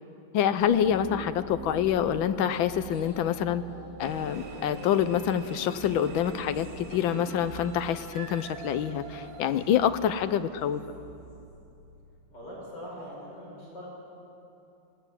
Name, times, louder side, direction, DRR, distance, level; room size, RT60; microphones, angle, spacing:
voice 1, 0.3-3.7 4.0-10.8, left 9 dB, 85° left, 12 dB, 1.5 m, -26 dB
sound 1, 0.6-12.1, right 1 dB, 35° left, 7.6 m, -45 dB
sound 2, 4.0-10.3, right 4 dB, 50° right, 1.9 m, -44 dB
voice 2, 12.3-13.9, equal, 60° left, -5 dB, 6.0 m, -42 dB
19.5 x 18.0 x 8.3 m, 2.8 s
omnidirectional pair, 2.1 m